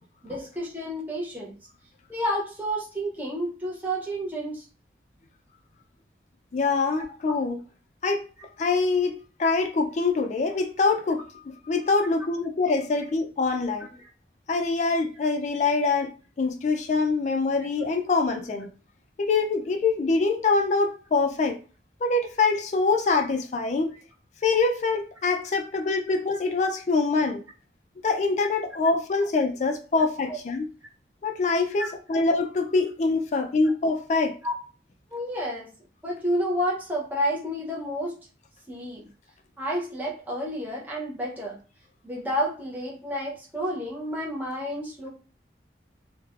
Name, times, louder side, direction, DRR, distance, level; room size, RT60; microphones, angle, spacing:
voice 1, 0.2-1.5 2.1-4.7 7.2-7.4 13.8-13.9 30.3-30.4 31.8-31.9 34.4-34.5 35.1-35.7 36.0-38.1 38.7-39.1 39.6-41.6 42.0-45.1, equal, 10° right, 0.6 m, -30 dB
voice 2, 6.5-7.6 8.0-8.3 8.6-13.9 14.5-18.7 19.2-21.6 22.0-23.9 24.4-27.4 28.0-30.6 31.2-34.4, left 3 dB, 40° left, 0.3 m, -24 dB
3.1 x 2.1 x 2.3 m
head